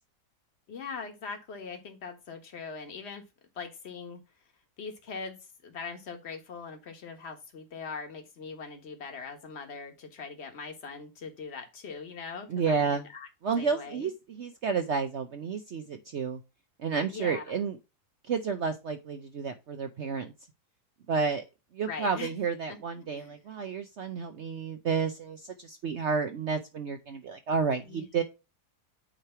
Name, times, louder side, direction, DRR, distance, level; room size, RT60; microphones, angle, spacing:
voice 1, 0.7-3.2 3.6-4.2 4.8-13.3 13.6-14.1 17.1-17.6 21.9-22.3 22.7-23.4 27.8-28.1, left 5 dB, 40° left, 5 dB, 1.6 m, -41 dB
voice 2, 12.5-13.0 13.4-16.4 16.8-17.8 18.2-20.3 21.1-21.4 21.7-28.2, right 5 dB, 55° right, 7 dB, 0.9 m, -31 dB
8.9 x 3.2 x 5.6 m, 0.26 s
omnidirectional pair, 1.7 m